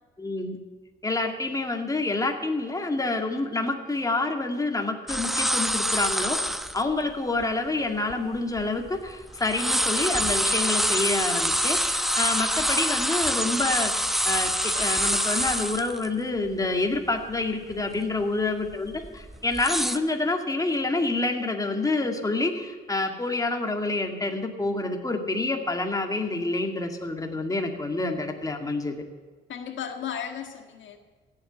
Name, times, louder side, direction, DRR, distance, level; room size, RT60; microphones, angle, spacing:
voice 1, 0.2-0.6 1.0-29.0, left 2 dB, 15° left, 3 dB, 2.2 m, -28 dB
sound 1, 5.1-6.8 7.4-7.5 8.1-9.1 9.4-16.1 16.4-16.5 16.9-17.3 17.7-18.0 18.7-20.0, equal, ahead, 0.8 m, -26 dB
Wind instrument woodwind instrument, 12.0-16.0, left 4 dB, 40° left, 2.5 m, -41 dB
voice 2, 29.5-31.0, left 8 dB, 70° left, 6 dB, 1.8 m, -35 dB
16.0 x 8.4 x 8.5 m, 1.4 s
cardioid pair, 90°, 20 cm